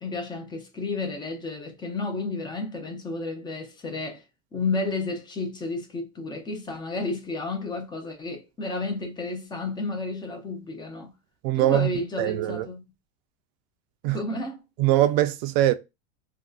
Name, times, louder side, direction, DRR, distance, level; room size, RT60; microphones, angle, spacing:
voice 1, 0.0-4.2 4.5-11.1 11.5-12.8 14.0-14.6, left 3 dB, 15° left, 0.3 m, -32 dB
voice 2, 11.4-11.9 12.2-12.7 14.0-14.2 14.8-15.7, right 14 dB, 55° right, 0.4 m, -22 dB
2.5 x 2.1 x 2.2 m
supercardioid pair, 130°, 38 cm